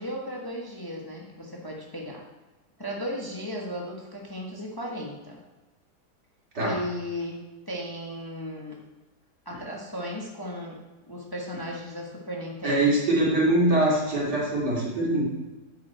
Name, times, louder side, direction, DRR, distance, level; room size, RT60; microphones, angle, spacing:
voice 1, 0.0-2.2 2.8-5.4 6.6-7.4 7.7-8.8 9.4-12.9, equal, 15° left, -2 dB, 1.1 m, -35 dB
voice 2, 12.6-15.3, right 1 dB, 85° right, -5 dB, 3.3 m, -23 dB
8.4 x 7.5 x 4.4 m, 1.2 s
omnidirectional pair, 1.7 m